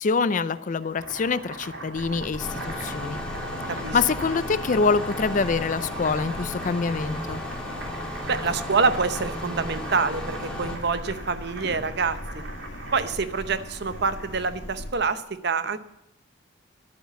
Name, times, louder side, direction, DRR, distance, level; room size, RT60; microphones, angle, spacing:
voice 1, 0.0-3.2 3.9-7.4, left 4 dB, 40° left, 16 dB, 0.5 m, -25 dB
Boiling, 0.8-14.6, right 2 dB, 80° right, 3.1 m, -41 dB
sound 1, 1.9-14.9, left 1 dB, 70° left, 1.5 m, -40 dB
Engine starting, 2.4-10.8, left 1 dB, 5° left, 2.3 m, -35 dB
voice 2, 3.7-4.0 8.3-12.2 12.9-15.8, right 4 dB, 60° right, 12 dB, 0.8 m, -26 dB
12.0 x 8.3 x 8.1 m, 0.86 s
head